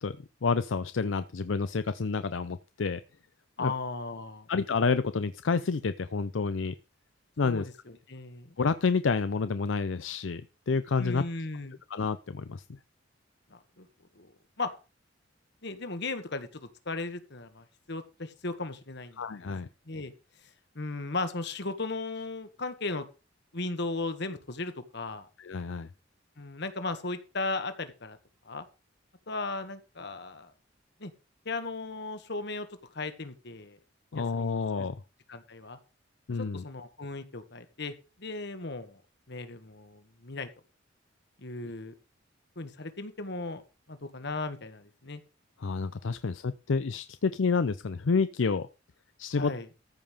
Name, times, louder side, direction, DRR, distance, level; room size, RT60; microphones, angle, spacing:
voice 1, 0.0-3.0 3.6-3.7 4.5-6.7 7.4-7.7 8.6-10.4 10.7-11.2 11.9-12.8 19.2-19.7 25.4-25.9 34.1-35.0 36.3-36.6 45.6-48.7 49.2-49.5, left 4 dB, 85° left, 13 dB, 0.6 m, -29 dB
voice 2, 3.6-4.5 7.4-8.6 11.0-11.8 13.5-13.9 14.1-14.3 14.6-14.7 15.6-19.5 19.9-20.1 20.7-23.1 23.5-25.3 26.4-28.2 28.4-28.6 29.3-30.5 31.0-31.1 31.4-32.7 32.9-33.8 34.1-34.9 35.3-35.8 36.5-39.0 39.3-40.5 41.4-41.9 42.5-43.6 43.9-45.2 49.3-49.7, left 3 dB, 65° left, 10 dB, 1.7 m, -36 dB
14.0 x 5.5 x 6.5 m, 0.32 s
head